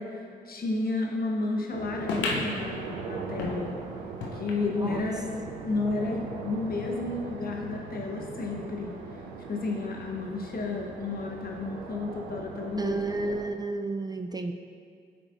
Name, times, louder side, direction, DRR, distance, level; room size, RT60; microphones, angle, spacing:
voice 1, 0.0-3.7 4.3-5.2 5.7-8.9 9.5-13.0 13.2-13.4, left 3 dB, 55° left, 0 dB, 1.0 m, -32 dB
sound 1, 1.7-13.5, right 5 dB, 90° right, 0.4 m, -40 dB
sound 2, 2.1-5.0 5.5-5.6 5.8-5.9 6.7-6.8, left 3 dB, 85° left, 0.6 m, -34 dB
voice 2, 4.7-5.0 12.8-14.5, right 3 dB, 20° right, 6 dB, 0.4 m, -31 dB
8.3 x 4.9 x 2.5 m, 2.3 s
hypercardioid pair, 40°, 19 cm